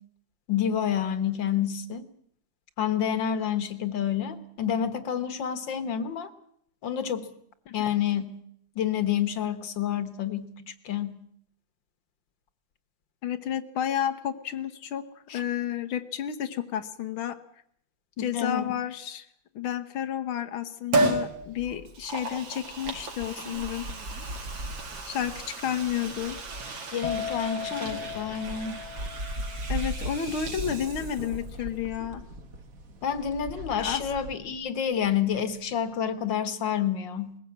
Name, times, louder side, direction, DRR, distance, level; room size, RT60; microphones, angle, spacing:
voice 1, 0.5-2.1 2.8-6.3 6.8-7.3 7.7-8.4 8.8-10.5 10.8-11.2 15.3-15.4 18.2-18.7 26.9-28.8 33.0-37.4, left 9 dB, 65° left, 12 dB, 2.0 m, -28 dB
voice 2, 13.2-15.1 15.3-17.4 18.2-19.3 19.6-23.9 25.1-26.4 27.7-28.0 29.7-32.2 33.8-34.1, left 9 dB, 85° left, 7 dB, 1.9 m, -31 dB
Liquid, 20.9-21.3 21.9-31.5 31.8-31.9, right 2 dB, 70° right, 3.1 m, -34 dB
sound 1, 21.1-34.4, right 1 dB, 45° right, 1.6 m, -40 dB
sound 2, 27.0-34.6 34.9-35.4, left 8 dB, 45° left, 0.5 m, -39 dB
21.0 x 15.5 x 8.6 m, 0.69 s
omnidirectional pair, 2.2 m